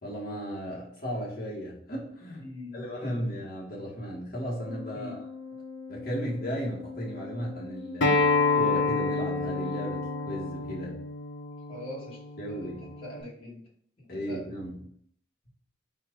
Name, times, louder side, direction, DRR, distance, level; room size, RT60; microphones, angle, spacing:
voice 1, 0.0-2.5 2.7-5.3 5.9-10.0 10.3-11.0 12.4-12.8 14.1-14.8, equal, 45° left, -4 dB, 1.5 m, -35 dB
voice 2, 2.4-3.3 4.9-5.2 11.7-12.2 12.5-12.7 13.0-13.6 14.0-14.5, left 1 dB, 25° left, -5 dB, 1.6 m, -42 dB
Organ, 4.5-11.0, left 4 dB, 90° left, 1.2 m, -43 dB
Acoustic guitar, 8.0-13.2, left 3 dB, 65° left, 0.8 m, -28 dB
4.3 x 2.5 x 4.6 m, 0.62 s
head